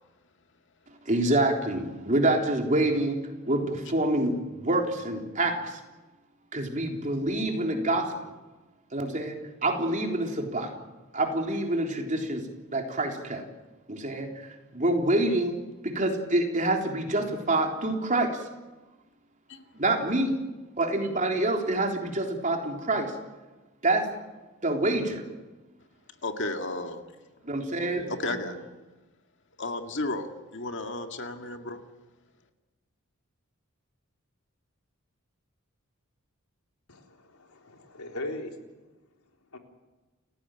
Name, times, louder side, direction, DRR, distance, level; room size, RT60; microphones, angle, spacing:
voice 1, 1.1-3.2 3.5-5.8 6.5-8.1 8.9-10.7 11.1-12.4 12.7-13.4 13.9-14.3 14.7-15.6 15.8-18.4 19.7-20.4 20.8-23.1 23.8-24.1 24.6-25.2 27.4-28.3, right 1 dB, 35° right, 2 dB, 3.7 m, -26 dB
voice 2, 26.2-27.1 28.1-28.6 29.6-31.8, left 2 dB, 55° left, 6 dB, 2.1 m, -33 dB
voice 3, 36.9-38.6 39.5-39.6, left 1 dB, 85° left, 3 dB, 3.8 m, -39 dB
29.5 x 16.5 x 9.1 m, 1.2 s
head